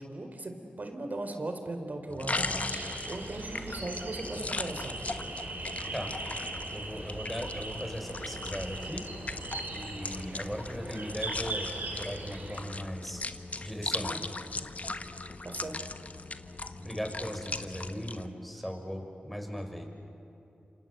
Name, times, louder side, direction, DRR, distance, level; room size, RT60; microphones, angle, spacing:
voice 1, 0.0-5.0 15.4-15.7, right 2 dB, 55° right, 6 dB, 4.0 m, -38 dB
sound 1, 2.1-18.3, left 3 dB, 45° left, 1.3 m, -39 dB
sound 2, 2.4-12.6, right 2 dB, 70° right, 5.3 m, -40 dB
voice 2, 6.7-9.1 9.7-13.2 13.6-14.2 16.8-19.9, equal, ahead, 4 dB, 5.2 m, -38 dB
27.5 x 27.0 x 8.0 m, 2.9 s
cardioid pair, 50°, 3 cm